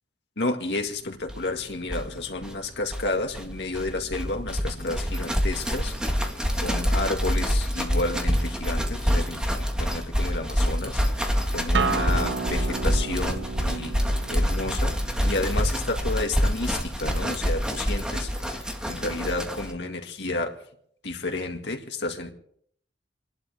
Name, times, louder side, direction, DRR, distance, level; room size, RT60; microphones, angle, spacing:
voice 1, 0.4-6.0 6.6-14.0 14.3-20.6 21.0-22.3, left 2 dB, 75° left, 2.0 m, -31 dB
sound 1, 1.3-1.4 1.6-1.7 1.8-19.7, equal, 5° right, 1.6 m, -26 dB
Acoustic guitar, 11.7-16.9, right 4 dB, 85° right, 0.8 m, -33 dB
29.5 x 11.5 x 3.5 m
head